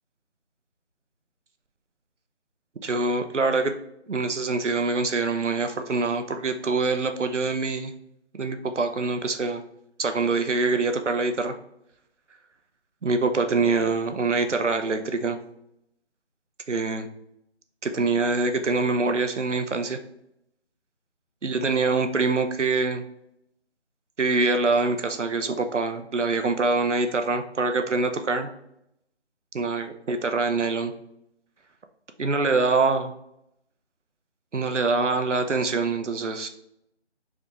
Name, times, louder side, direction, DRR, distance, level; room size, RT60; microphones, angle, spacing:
voice 1, 2.8-3.7 4.1-7.9 8.3-9.6 10.0-11.5 13.0-15.4 16.7-17.1 17.8-20.0 21.4-23.1 24.2-28.5 29.5-30.9 32.2-33.1 34.5-36.5, right 3 dB, 85° right, 7 dB, 0.8 m, -24 dB
4.9 x 3.5 x 3.0 m, 0.79 s
figure-of-eight pair, 175°, 35 cm